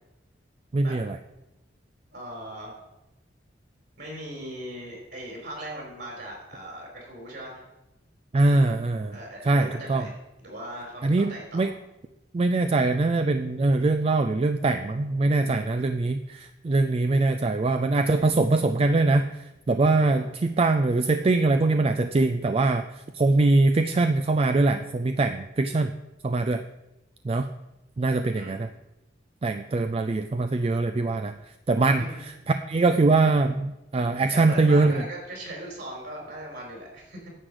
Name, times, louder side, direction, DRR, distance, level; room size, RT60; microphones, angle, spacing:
voice 1, 0.7-1.2 8.3-9.2 9.4-10.0 11.0-11.7 12.3-19.3 19.7-22.8 23.1-25.9 26.2-26.6 27.3-27.5 28.0-28.7 29.4-31.3 31.7-32.0 32.5-35.0, right 3 dB, 30° right, 8 dB, 0.3 m, -22 dB
voice 2, 2.1-2.8 4.0-7.7 9.1-11.7 19.9-20.3 28.2-28.5 32.0-32.2 34.3-37.3, right 1 dB, 60° right, -1 dB, 4.4 m, -39 dB
10.0 x 4.8 x 7.9 m, 0.97 s
head